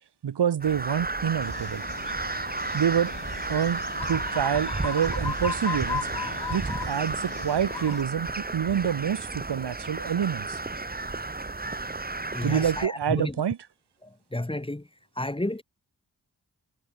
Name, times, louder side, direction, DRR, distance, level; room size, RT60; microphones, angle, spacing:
voice 1, 0.2-1.8 2.7-3.1 3.5-6.1 6.5-10.6 12.4-13.6, right 8 dB, 75° right, 1.3 m, -27 dB
Crow, 0.6-12.9, right 3 dB, 20° right, 1.7 m, -33 dB
sound 1, 1.4-8.0, left 6 dB, 70° left, 3.5 m, -37 dB
voice 2, 12.3-13.3 14.0-14.8 15.2-15.6, left 1 dB, 15° left, 1.7 m, -31 dB
cardioid pair, 55°, 40 cm